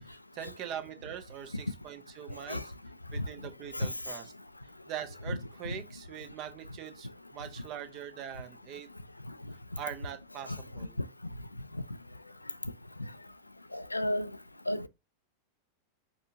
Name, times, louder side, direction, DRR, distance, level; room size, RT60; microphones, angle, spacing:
voice 1, 0.1-2.7 3.1-4.3 4.9-8.9 9.8-11.0, right 10 dB, 40° right, 0.9 m, -42 dB
voice 2, 13.7-14.3 14.7-14.9, left 1 dB, 85° left, 0.3 m, -31 dB
5.3 x 3.5 x 2.8 m
figure-of-eight pair, 90°, 0 cm